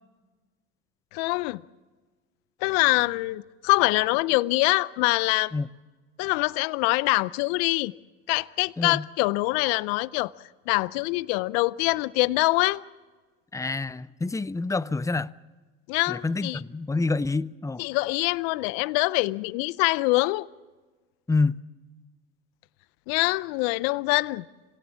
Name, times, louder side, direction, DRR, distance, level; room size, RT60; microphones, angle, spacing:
voice 1, 1.1-1.6 2.6-5.5 6.2-7.9 8.3-10.3 10.7-12.8 15.9-16.6 17.8-20.5 23.1-24.4, left 22 dB, 80° left, 0.6 m, -24 dB
voice 2, 13.5-15.3 16.1-17.8 21.3-21.6, left 3 dB, 10° left, 0.6 m, -27 dB
26.5 x 17.0 x 7.2 m
supercardioid pair, 75°, 31 cm